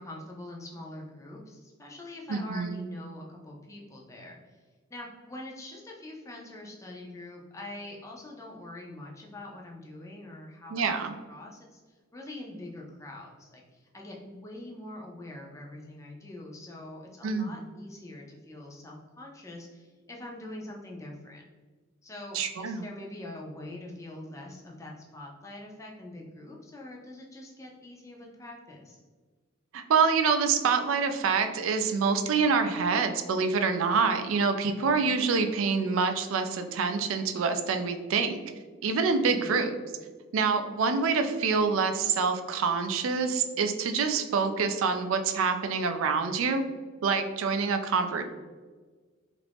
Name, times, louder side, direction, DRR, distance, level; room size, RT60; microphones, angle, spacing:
voice 1, 0.0-4.6 4.9-21.4 22.0-29.0 39.2-39.7, left 1 dB, 15° left, -2 dB, 0.4 m, -44 dB
voice 2, 2.3-2.8 10.7-11.2 17.2-17.6 22.3-22.9 29.7-38.4 38.8-39.7 40.3-46.6 47.0-48.2, right 5 dB, 80° right, 7 dB, 0.3 m, -26 dB
2.9 x 2.5 x 3.3 m, 1.4 s
head